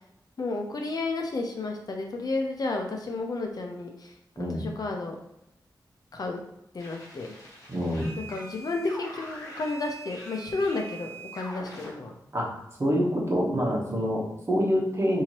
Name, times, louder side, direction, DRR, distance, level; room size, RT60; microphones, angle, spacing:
voice 1, 0.4-4.1 4.4-5.2 6.1-6.4 6.7-7.3 8.2-12.1, left 3 dB, 60° left, 2 dB, 0.7 m, -32 dB
sound 1, 6.8-11.9, right 1 dB, 40° left, 1.4 m, -43 dB
voice 2, 7.7-8.1 12.3-12.5 12.8-15.2, equal, 35° right, -3 dB, 1.1 m, -26 dB
4.5 x 2.8 x 2.9 m, 0.80 s
wide cardioid pair, 125°, 8 cm